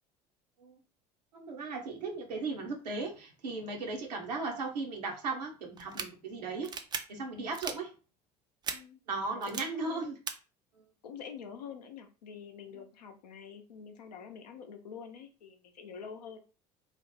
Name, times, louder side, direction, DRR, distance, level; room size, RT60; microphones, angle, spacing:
voice 1, 1.3-6.7 7.1-7.9 9.1-10.2, right 3 dB, 75° right, 2 dB, 0.8 m, -36 dB
sound 1, 5.8-6.1 6.6-7.0 7.5-7.8 8.6-8.8 9.4-9.6 10.3-10.4, right 6 dB, 20° right, 0.4 m, -36 dB
voice 2, 9.3-10.1 11.0-16.4, left 7 dB, 70° left, 5 dB, 0.6 m, -46 dB
3.1 x 2.0 x 3.1 m, 0.34 s
figure-of-eight pair, 65°, 21 cm